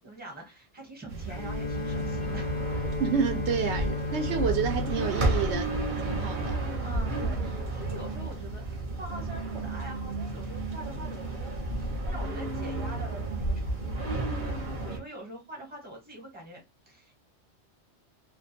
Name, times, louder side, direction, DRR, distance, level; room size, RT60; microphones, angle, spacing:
voice 1, 0.0-2.8 6.8-16.6 16.9-17.1, right 1 dB, 10° right, 0.9 m, -44 dB
sound 1, 1.1-15.0, right 2 dB, 50° right, 0.8 m, -32 dB
Bowed string instrument, 1.3-6.5, left 4 dB, 40° left, 0.5 m, -35 dB
voice 2, 3.0-5.8 6.0-6.6, right 6 dB, 80° right, 0.9 m, -29 dB
2.3 x 2.2 x 2.6 m
omnidirectional pair, 1.1 m